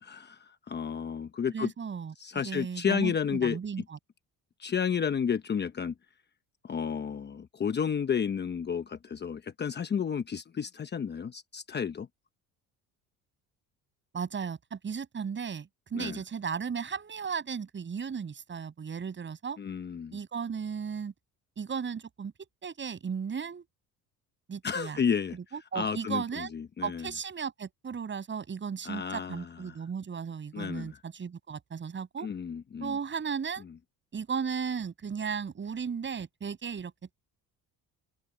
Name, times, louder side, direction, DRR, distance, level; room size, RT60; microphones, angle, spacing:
voice 1, 0.0-1.7 2.2-3.6 4.6-5.9 6.6-12.1 15.9-16.2 19.6-20.2 24.6-27.1 28.8-29.8 30.5-31.0 32.2-33.0 33.6-33.7, left 7 dB, 30° left, 1.0 m, -32 dB
voice 2, 1.5-2.1 2.4-3.8 14.1-19.6 20.1-21.1 21.6-22.3 22.6-23.6 24.5-25.0 25.5-26.5 26.8-32.3 32.8-33.7 34.1-37.1, right 6 dB, 35° right, 6.9 m, -35 dB
cardioid pair, 120°, 34 cm